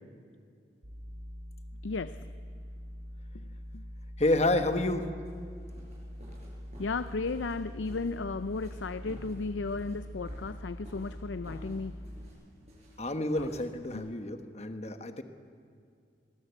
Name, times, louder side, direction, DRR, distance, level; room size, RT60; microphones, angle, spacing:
sound 1, 0.8-12.3, equal, 85° right, 2.7 m, -44 dB
voice 1, 1.8-2.2 3.3-3.4 3.7-3.8 6.8-12.0 13.9-14.1, left 3 dB, 75° left, 13 dB, 0.5 m, -35 dB
voice 2, 4.2-5.1 13.0-15.2, left 2 dB, 35° left, 8 dB, 1.2 m, -29 dB
sound 2, 5.3-13.9, equal, 35° right, 7.2 m, -51 dB
23.0 x 20.5 x 8.1 m, 2.4 s
head